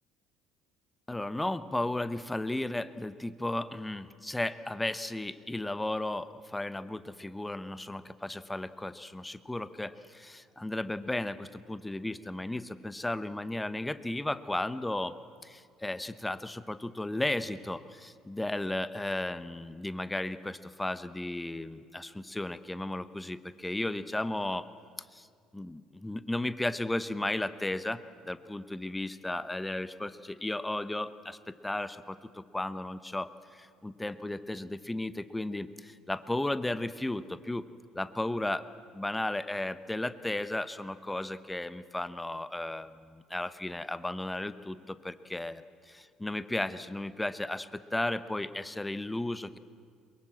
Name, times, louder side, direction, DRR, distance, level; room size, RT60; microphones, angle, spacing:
voice 1, 1.1-15.2 15.4-24.7 25.1-25.3 25.5-37.6 37.9-38.7 38.9-49.6, left 1 dB, 10° left, 14 dB, 1.0 m, -34 dB
23.0 x 22.5 x 7.6 m, 2.2 s
hypercardioid pair, 60°, 0 cm